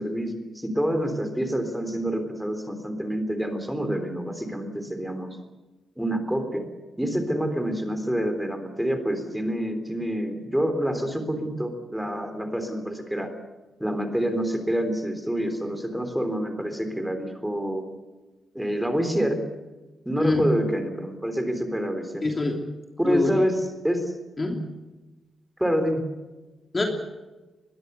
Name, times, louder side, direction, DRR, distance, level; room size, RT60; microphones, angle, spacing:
voice 1, 0.0-5.4 6.0-6.6 7.0-13.3 13.8-17.8 18.5-19.4 20.1-22.2 23.0-24.1 25.6-26.0, equal, 5° right, 7 dB, 3.6 m, -27 dB
voice 2, 22.2-22.6 23.0-23.4 24.4-24.6 26.7-26.8, left 3 dB, 20° left, 2 dB, 3.0 m, -24 dB
23.0 x 22.0 x 6.9 m, 1.1 s
wide cardioid pair, 170°, 0 cm